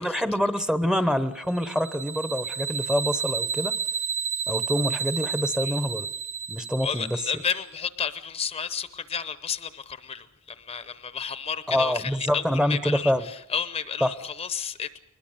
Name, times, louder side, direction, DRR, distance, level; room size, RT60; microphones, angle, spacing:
voice 1, 0.0-3.8 4.5-6.1 6.5-7.2 11.7-13.3 14.0-14.1, equal, 5° right, 0.8 m, -26 dB
sound 1, 1.6-7.5, right 7 dB, 55° right, 0.8 m, -31 dB
voice 2, 6.8-13.1 13.5-15.0, left 6 dB, 30° left, 0.8 m, -32 dB
22.0 x 20.5 x 6.5 m
head